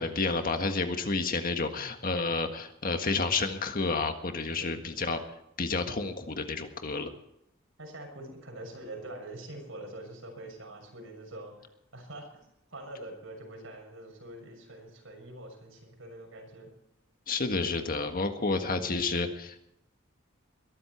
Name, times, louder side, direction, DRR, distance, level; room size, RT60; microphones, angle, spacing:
voice 1, 0.0-5.2 5.6-7.1 17.3-19.7, left 3 dB, 45° left, 6 dB, 1.7 m, -30 dB
voice 2, 7.8-16.7 18.6-18.8, right 1 dB, 75° right, 2 dB, 6.5 m, -45 dB
22.0 x 13.5 x 4.6 m, 0.79 s
head